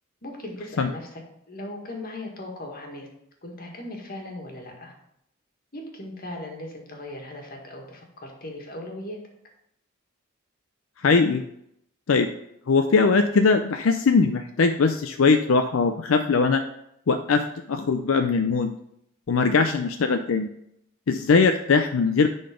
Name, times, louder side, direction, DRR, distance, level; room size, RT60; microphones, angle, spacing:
voice 1, 0.2-1.2 1.5-3.1 3.4-4.9 5.7-9.2, left 1 dB, 45° left, 1 dB, 1.7 m, -38 dB
voice 2, 11.0-11.4 12.1-12.3 12.7-16.6 17.1-17.4 17.7-18.7 19.3-20.5 21.1-22.3, left 4 dB, 80° left, 7 dB, 0.5 m, -20 dB
10.0 x 3.9 x 5.0 m, 0.77 s
head